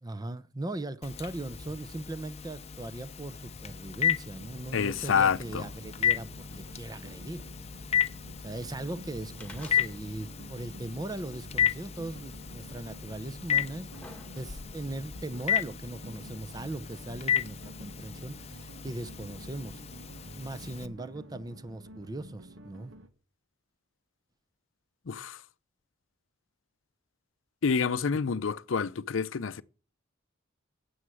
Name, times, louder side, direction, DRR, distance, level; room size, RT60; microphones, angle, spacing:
voice 1, 0.0-7.4 8.4-19.8 20.4-22.9, right 2 dB, 20° right, 0.6 m, -39 dB
Telephone, 1.0-20.9, left 9 dB, 30° left, 0.7 m, -34 dB
sound 1, 4.4-23.1, right 1 dB, 75° right, 1.3 m, -49 dB
voice 2, 4.7-5.6 25.1-25.4 27.6-29.6, left 6 dB, 75° left, 0.6 m, -28 dB
sound 2, 9.4-10.4 10.6-10.7 11.7-11.8 12.7-12.8 13.5-14.8 15.7-15.8, left 2 dB, 5° left, 2.1 m, -49 dB
9.6 x 8.0 x 7.6 m
head